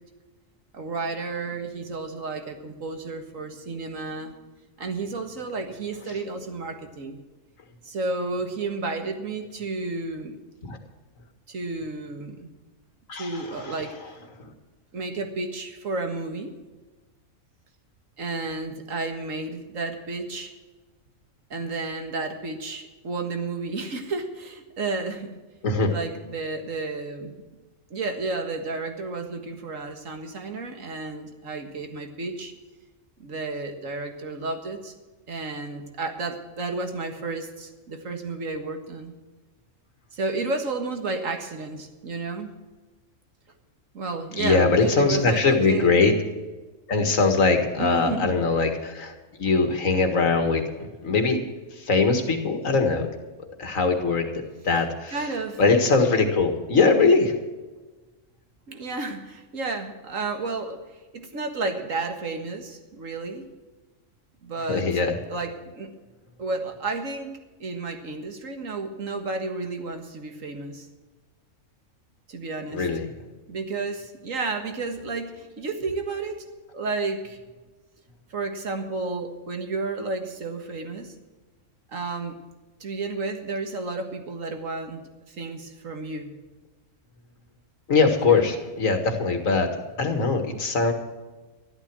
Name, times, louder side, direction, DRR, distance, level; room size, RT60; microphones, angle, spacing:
voice 1, 0.7-4.5 4.8-7.2 7.8-10.4 11.5-12.5 13.1-14.2 14.9-16.5 18.2-20.6 21.5-25.4 25.9-27.4 27.9-32.5 33.2-34.9 35.3-39.1 40.1-42.5 43.9-46.0 47.8-48.4 55.1-55.6 58.7-60.8 61.1-63.5 64.4-64.9 65.3-65.9 66.4-70.9 72.3-72.9 73.5-76.5 76.7-77.4 78.3-81.1 81.9-82.4 82.8-86.4 88.1-88.5, right 3 dB, 90° right, 5 dB, 2.0 m, -32 dB
voice 2, 13.1-13.7 14.4-14.5 25.6-26.0 44.4-46.2 46.9-51.4 51.8-53.1 53.6-54.3 54.6-55.2 55.6-57.3 64.7-65.2 72.7-73.1 87.9-90.9, left 4 dB, 90° left, 5 dB, 2.2 m, -22 dB
13.5 x 12.0 x 6.1 m, 1.3 s
omnidirectional pair, 1.3 m